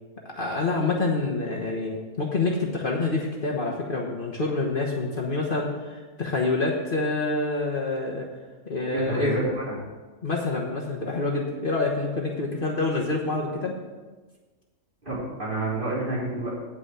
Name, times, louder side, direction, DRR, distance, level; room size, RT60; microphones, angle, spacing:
voice 1, 0.3-8.3 8.6-9.4 10.2-13.7, left 3 dB, 45° left, -1 dB, 1.3 m, -27 dB
voice 2, 8.7-9.7 15.0-16.5, right 2 dB, 40° right, -7 dB, 4.2 m, -29 dB
9.8 x 6.1 x 7.4 m, 1.3 s
omnidirectional pair, 1.3 m